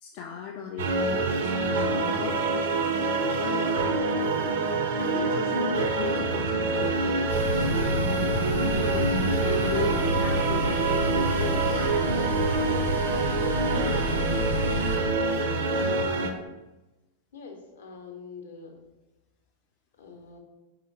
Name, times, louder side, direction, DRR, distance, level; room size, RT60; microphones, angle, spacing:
voice 1, 0.0-2.5 3.4-3.9 5.0-8.3 8.8-9.1 9.4-11.9 15.8-16.0, left 8 dB, 45° left, 1 dB, 0.3 m, -37 dB
sound 1, 0.8-16.3, right 3 dB, 60° right, 0.4 m, -26 dB
sound 2, 7.3-15.0, equal, 90° right, 1.2 m, -29 dB
voice 2, 17.3-18.7 20.0-20.4, left 5 dB, 65° left, 2 dB, 0.7 m, -44 dB
4.9 x 2.8 x 2.7 m, 1.1 s
figure-of-eight pair, 90°, 0 cm